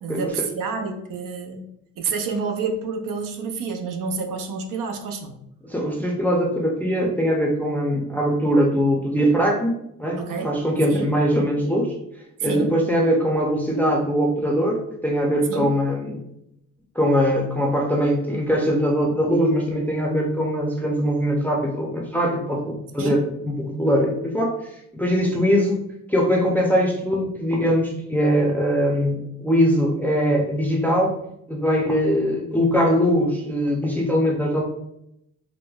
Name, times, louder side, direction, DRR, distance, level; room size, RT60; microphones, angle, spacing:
voice 1, 0.0-1.6 2.0-5.3 10.2-10.5 10.9-11.1 12.4-12.7 15.5-15.7 23.0-23.2, right 4 dB, 90° right, 4 dB, 0.6 m, -28 dB
voice 2, 5.6-11.9 12.4-16.2 17.0-24.5 24.9-25.8 26.1-31.1 31.5-34.6, equal, 5° left, -2 dB, 0.4 m, -21 dB
4.8 x 2.1 x 2.3 m, 0.78 s
cardioid pair, 125°, 32 cm